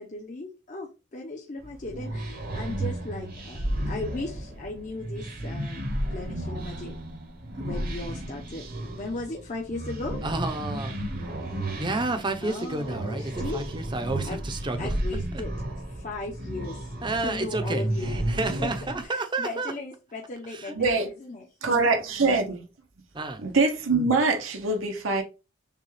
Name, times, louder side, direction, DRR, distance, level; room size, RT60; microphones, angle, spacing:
voice 1, 0.0-5.8 6.1-6.9 7.6-8.7 8.9-10.2 12.4-13.6 14.2-14.4 14.8-16.9 17.2-18.1 18.6-18.7 19.0-21.7 23.4-23.5, left 2 dB, 40° left, 0.7 m, -37 dB
sound 1, 1.6-19.1, right 1 dB, 50° right, 0.9 m, -33 dB
voice 2, 10.2-11.0 11.8-14.9 17.0-19.7 20.5-20.7 23.1-23.4, right 2 dB, 25° right, 0.6 m, -30 dB
voice 3, 20.8-21.1 21.6-22.7 23.4-25.2, right 3 dB, 85° right, 0.9 m, -23 dB
6.6 x 2.3 x 3.2 m
head